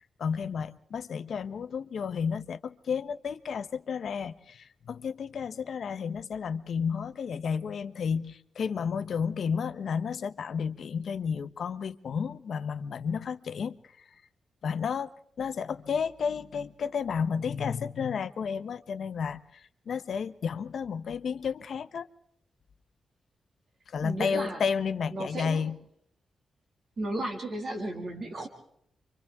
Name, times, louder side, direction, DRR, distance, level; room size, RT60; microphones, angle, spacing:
voice 1, 0.2-14.0 14.6-15.1 15.4-22.1 23.9-25.8, left 6 dB, 65° left, 0.8 m, -32 dB
voice 2, 24.0-24.6 25.1-25.7 27.0-28.5, right 1 dB, 45° right, 2.2 m, -34 dB
29.0 x 25.0 x 3.5 m
wide cardioid pair, 140°, 0 cm